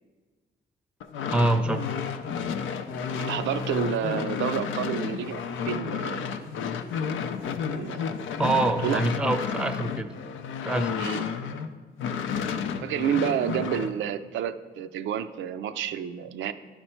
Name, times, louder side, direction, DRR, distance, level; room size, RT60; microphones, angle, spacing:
sound 1, 1.0-11.7 12.0-13.9, left 6 dB, 85° left, 0.5 m, -31 dB
voice 1, 1.3-1.9 8.4-10.1 10.6-11.0, right 2 dB, 5° right, 8 dB, 0.5 m, -25 dB
voice 2, 3.2-6.3 7.7-8.1 8.8-9.0 11.0-11.3 12.8-16.5, right 9 dB, 80° right, 10 dB, 0.4 m, -29 dB
11.0 x 4.3 x 4.4 m, 1.4 s
cardioid pair, 80°, 19 cm